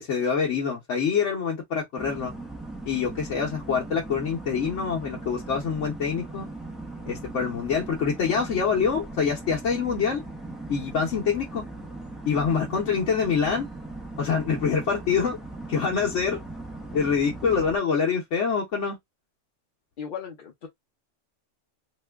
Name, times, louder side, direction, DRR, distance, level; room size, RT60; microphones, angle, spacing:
voice 1, 0.0-2.3 2.8-6.5 7.1-10.2 10.7-11.6 12.2-13.7 14.2-15.4 15.7-16.4 16.9-19.0, left 6 dB, 75° left, 1.2 m, -25 dB
sound 1, 2.0-17.8, right 2 dB, ahead, 0.4 m, -39 dB
voice 2, 20.0-20.7, left 7 dB, 55° left, 0.7 m, -36 dB
3.0 x 2.2 x 3.4 m
omnidirectional pair, 1.2 m